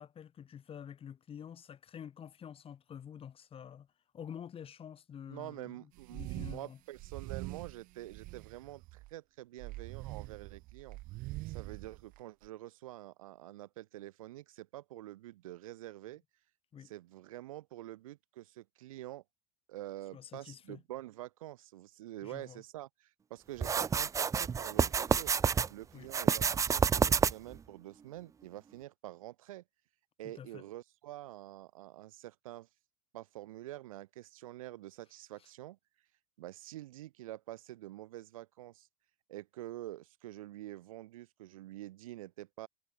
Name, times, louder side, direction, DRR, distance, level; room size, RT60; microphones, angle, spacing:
voice 1, 0.0-3.9 4.1-6.8 16.7-16.9 20.1-20.8 22.2-22.6 25.9-26.1 30.2-30.6, left 8 dB, 30° left, 7.7 m, -48 dB
voice 2, 5.3-11.0 11.5-16.2 16.8-19.2 19.7-25.3 25.7-29.6 30.2-32.7 33.1-35.8 36.4-38.9 39.3-42.7, right 15 dB, 75° right, 2.7 m, -47 dB
sound 1, 6.0-6.6 6.9-9.1 9.6-12.5, right 20 dB, 50° right, 1.7 m, -44 dB
sound 2, 23.6-25.7 26.1-27.6, right 6 dB, 15° right, 0.5 m, -28 dB
hypercardioid pair, 90°, 18 cm